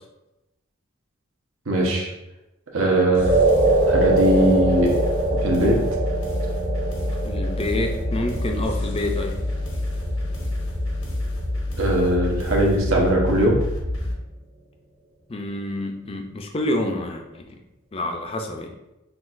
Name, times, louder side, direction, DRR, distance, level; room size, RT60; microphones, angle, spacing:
voice 1, 1.7-2.1 2.7-3.4 3.9-4.9 5.4-5.8 11.8-13.6, right 1 dB, 75° right, -2 dB, 0.9 m, -20 dB
sound 1, 3.1-14.1, left 1 dB, 85° left, 1.0 m, -27 dB
sound 2, 3.2-11.7, right 2 dB, 30° right, 0.6 m, -24 dB
voice 2, 7.2-9.4 15.3-17.6 17.9-18.7, left 1 dB, 25° left, 4 dB, 0.4 m, -28 dB
5.8 x 2.3 x 2.5 m, 0.94 s
head